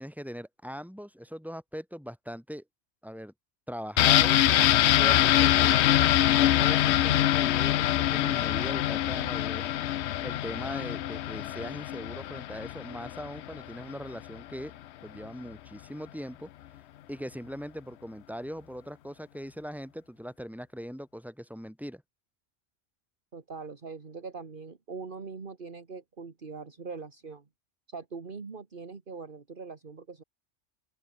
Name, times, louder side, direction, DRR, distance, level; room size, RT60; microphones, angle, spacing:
voice 1, 0.0-2.6 3.0-3.3 3.7-4.4 5.0-5.7 6.3-9.7 10.2-14.7 15.0-16.5 17.1-22.0, equal, ahead, 6.8 m, -40 dB
sound 1, 4.0-13.6 13.9-14.0, left 12 dB, 70° left, 0.9 m, -24 dB
voice 2, 23.3-27.5 27.9-30.2, right 4 dB, 50° right, 1.8 m, -42 dB
open air
omnidirectional pair, 1.2 m